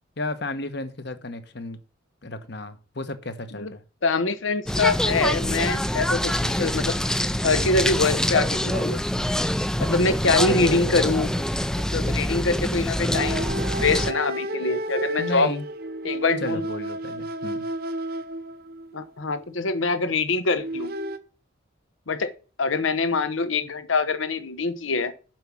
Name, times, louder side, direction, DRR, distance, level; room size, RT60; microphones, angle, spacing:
voice 1, 0.2-1.8 2.2-3.8 15.2-15.7 16.4-17.7, left 2 dB, 55° left, 1.2 m, -33 dB
voice 2, 4.0-7.0 7.4-9.0 9.8-11.3 11.9-15.5 16.0-16.6 18.9-20.9 22.1-22.3 22.6-25.1, left 3 dB, 75° left, 1.0 m, -24 dB
sound 1, 4.7-14.1, equal, 5° left, 0.4 m, -25 dB
sound 2, 10.3-12.0 13.0-19.1 20.5-21.2, right 1 dB, 50° right, 0.8 m, -32 dB
7.5 x 6.2 x 7.1 m
head